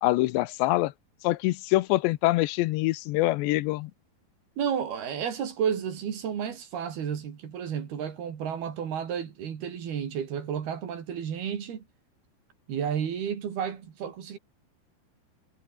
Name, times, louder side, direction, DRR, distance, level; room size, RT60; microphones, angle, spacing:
voice 1, 0.0-0.9 1.2-3.9, left 18 dB, 85° left, 3.0 m, -25 dB
voice 2, 4.6-11.8 12.7-14.4, right 8 dB, 60° right, 4.7 m, -32 dB
omnidirectional pair, 5.1 m